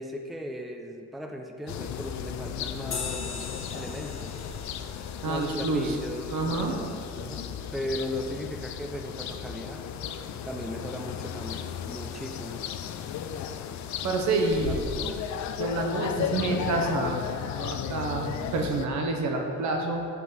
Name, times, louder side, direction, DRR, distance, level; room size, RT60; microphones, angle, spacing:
voice 1, 0.0-4.4 5.2-9.8 10.4-12.7 14.6-15.2, equal, ahead, 3 dB, 0.5 m, -37 dB
sound 1, 1.7-18.9, left 8 dB, 70° left, 0.5 m, -35 dB
sound 2, 2.9-7.8, left 5 dB, 45° left, 1.2 m, -42 dB
voice 2, 5.2-6.0 6.3-6.8 14.0-14.8 15.6-20.0, right 3 dB, 70° right, 2 dB, 1.0 m, -28 dB
5.9 x 5.1 x 5.4 m, 2.4 s
cardioid pair, 90°, 30 cm